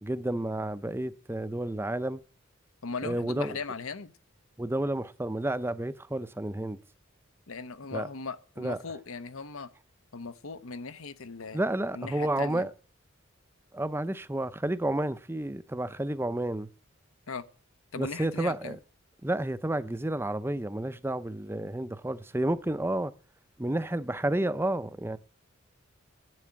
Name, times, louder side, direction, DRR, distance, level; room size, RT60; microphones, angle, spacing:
voice 1, 0.0-2.2 3.0-3.6 4.6-6.8 7.9-8.1 8.6-8.8 11.5-12.7 13.7-16.7 18.0-18.8 19.2-23.1 23.6-25.2, right 1 dB, 10° right, 0.5 m, -30 dB
voice 2, 2.8-4.1 7.5-9.7 10.1-11.6 11.9-12.7 17.3-17.5 17.9-18.8, left 4 dB, 85° left, 0.9 m, -38 dB
11.0 x 7.9 x 8.5 m
head